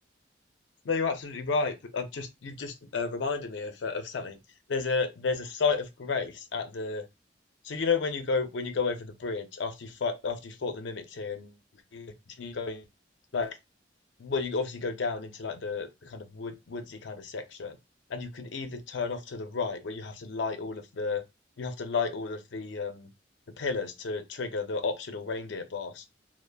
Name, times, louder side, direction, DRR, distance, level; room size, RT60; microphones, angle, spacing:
voice 1, 0.8-4.4 4.7-7.1 7.6-11.5 11.9-12.9 13.3-13.6 14.2-17.8 18.1-21.2 21.6-23.1 23.6-26.0, left 4 dB, 90° left, 0.5 m, -32 dB
3.2 x 2.0 x 2.2 m
head